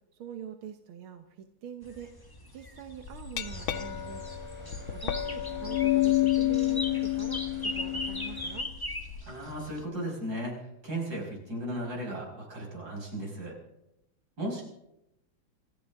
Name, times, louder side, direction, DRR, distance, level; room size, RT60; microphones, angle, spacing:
voice 1, 0.1-2.1 2.5-4.3 4.9-8.7, right 9 dB, 90° right, 6 dB, 1.8 m, -44 dB
sound 1, 1.8-9.8, left 1 dB, 15° left, 1.1 m, -40 dB
Glass, 3.1-9.2, left 15 dB, 85° left, 1.8 m, -29 dB
sound 2, 3.4-8.6, right 1 dB, 5° right, 2.5 m, -48 dB
voice 2, 9.3-13.6 14.4-14.6, right 1 dB, 50° right, -2 dB, 6.1 m, -36 dB
27.5 x 14.5 x 3.6 m, 0.85 s
omnidirectional pair, 2.2 m